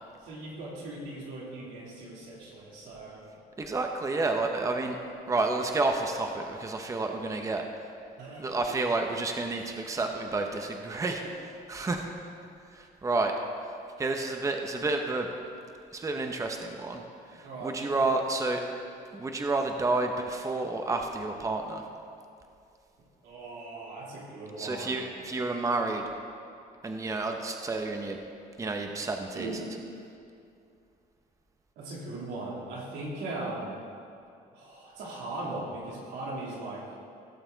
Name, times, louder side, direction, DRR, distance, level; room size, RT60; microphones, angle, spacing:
voice 1, 0.2-3.2 8.2-8.4 17.4-18.1 23.2-25.1 29.3-29.7 31.8-33.8 34.5-36.8, right 2 dB, 85° right, -4 dB, 3.0 m, -39 dB
voice 2, 3.6-5.0 5.3-7.7 8.4-11.2 11.7-12.1 12.7-13.3 14.0-15.3 15.9-17.0 17.4-18.6 19.1-21.8 24.6-26.0 26.8-28.2 28.6-29.5, right 3 dB, 20° right, 4 dB, 0.8 m, -30 dB
17.0 x 6.9 x 4.0 m, 2.5 s
cardioid pair, 110°, 17 cm